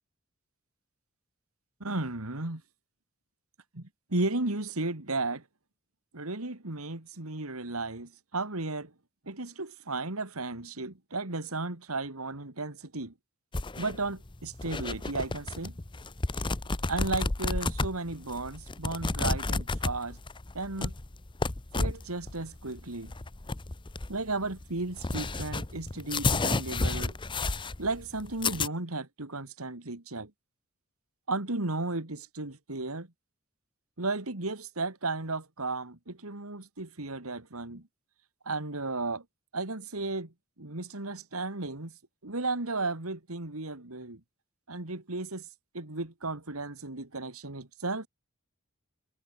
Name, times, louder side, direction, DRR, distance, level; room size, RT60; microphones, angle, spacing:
voice 1, 1.8-2.6 3.7-5.4 6.1-8.9 9.3-13.1 13.8-15.8 16.9-20.2 20.5-20.9 21.7-23.1 24.1-27.2 27.8-30.3 31.3-33.1 34.0-37.9 38.4-39.2 39.5-42.0 42.2-44.2 44.7-45.5 45.7-48.1, right 3 dB, 90° right, 2.7 m, -34 dB
sound 1, 13.5-28.7, left 3 dB, 20° left, 0.8 m, -32 dB
head